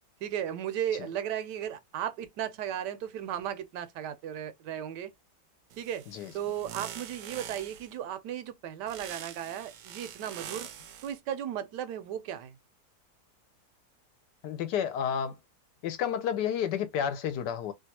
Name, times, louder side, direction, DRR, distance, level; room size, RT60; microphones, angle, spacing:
voice 1, 0.2-5.1 5.8-6.0 6.3-10.7 11.0-12.5, right 10 dB, 90° right, 1.2 m, -35 dB
sound 1, 5.7-7.9 8.9-11.2, right 9 dB, 70° right, 0.7 m, -44 dB
voice 2, 14.4-15.4 15.8-17.7, left 8 dB, 85° left, 1.3 m, -31 dB
3.1 x 2.3 x 2.8 m
omnidirectional pair, 1.8 m